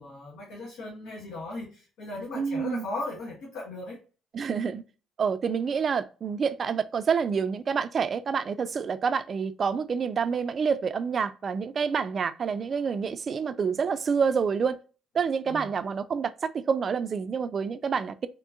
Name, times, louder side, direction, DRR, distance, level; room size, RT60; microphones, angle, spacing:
voice 1, 0.0-4.0 15.4-15.7, left 2 dB, 70° left, 1.1 m, -37 dB
voice 2, 2.3-2.9 4.3-4.8 5.2-14.8 15.1-18.3, right 6 dB, 45° right, 0.3 m, -28 dB
3.6 x 3.0 x 2.4 m
hypercardioid pair, 60°, 0 cm